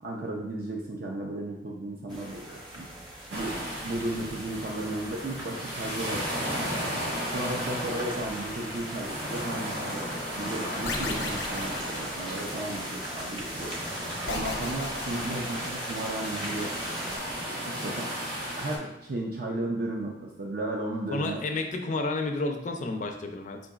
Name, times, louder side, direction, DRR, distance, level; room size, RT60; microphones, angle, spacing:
voice 1, 0.0-2.9 3.3-7.0 7.3-13.8 14.3-17.1 17.6-18.1 18.5-21.4, right 1 dB, 55° right, -1 dB, 0.5 m, -35 dB
sound 1, 2.1-17.2, right 1 dB, 25° right, 0.8 m, -41 dB
sound 2, 3.3-18.8, equal, 75° right, 1.2 m, -35 dB
sound 3, 10.8-12.8 14.3-16.1, left 3 dB, 85° left, 0.7 m, -37 dB
voice 2, 21.1-23.6, left 2 dB, 45° left, 5 dB, 0.4 m, -31 dB
4.5 x 3.8 x 2.3 m, 0.87 s
head